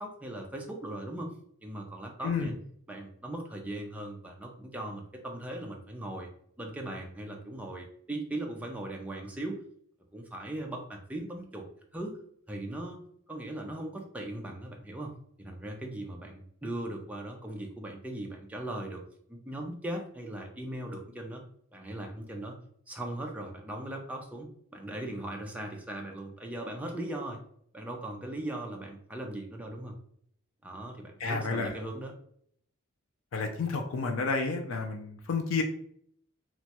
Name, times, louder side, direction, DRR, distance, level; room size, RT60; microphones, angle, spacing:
voice 1, 0.0-1.3 1.6-2.5 2.9-6.3 6.6-9.6 10.1-11.7 11.9-12.1 12.5-13.0 13.3-15.1 15.4-19.0 19.3-21.4 21.7-22.6 22.9-27.4 27.7-30.0 30.6-32.1, right 1 dB, 5° right, 1 dB, 0.4 m, -39 dB
voice 2, 31.2-31.8 33.3-35.6, left 4 dB, 75° left, 4 dB, 0.4 m, -30 dB
3.0 x 2.2 x 2.8 m, 0.65 s
head